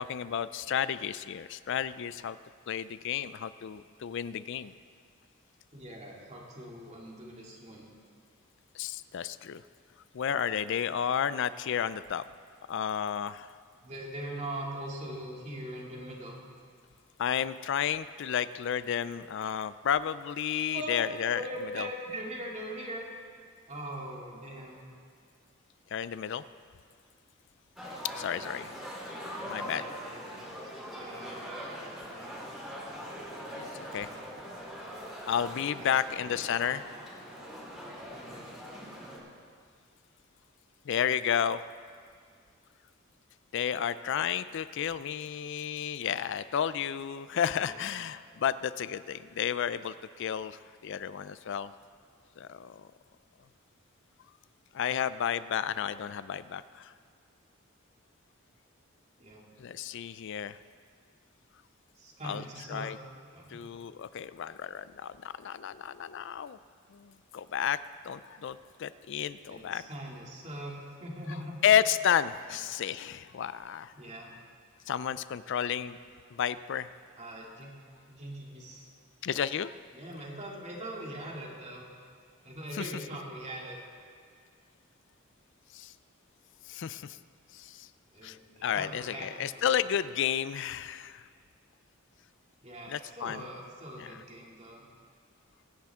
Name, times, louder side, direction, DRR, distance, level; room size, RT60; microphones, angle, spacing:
voice 1, 0.0-2.4 2.7-4.7 8.7-9.6 10.1-12.2 12.7-13.5 17.2-21.4 21.7-21.9 25.9-26.4 28.2-28.7 29.4-29.8 33.5-34.1 35.3-37.0 40.9-41.7 43.5-51.7 52.4-52.9 54.7-56.9 59.6-60.6 62.2-62.4 62.7-63.0 63.5-66.6 66.9-69.8 71.6-73.9 74.9-76.0 76.3-76.9 79.2-79.8 82.7-82.9 85.7-85.9 86.7-87.2 87.5-87.9 88.2-88.4 88.6-91.3 92.9-93.4 94.0-94.2, left 8 dB, 60° left, 15 dB, 0.4 m, -32 dB
voice 2, 5.7-7.9 13.8-16.4 20.7-21.0 21.3-23.0 23.7-24.8 29.3-30.5 30.9-32.4 35.8-36.1 38.1-38.5 47.6-47.9 59.2-59.4 62.0-62.9 63.3-63.6 69.5-71.6 72.5-72.6 74.0-74.4 77.2-77.7 78.1-78.9 79.9-81.9 82.4-83.8 88.1-89.7 92.6-94.8, right 1 dB, 35° right, -2 dB, 2.5 m, -42 dB
sound 1, 27.8-39.2, equal, ahead, 3.7 m, -42 dB
24.0 x 10.5 x 3.6 m, 2.1 s
head